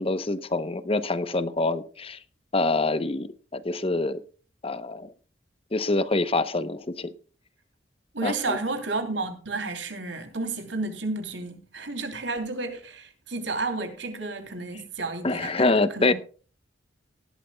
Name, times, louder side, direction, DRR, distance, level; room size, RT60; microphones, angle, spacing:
voice 1, 0.0-2.2 2.5-4.2 4.6-5.1 5.7-7.1 8.2-8.6 15.2-16.1, left 2 dB, 30° left, 0.8 m, -26 dB
voice 2, 8.1-15.7 15.9-16.1, right 3 dB, 85° right, 3.1 m, -31 dB
18.5 x 12.5 x 2.3 m
head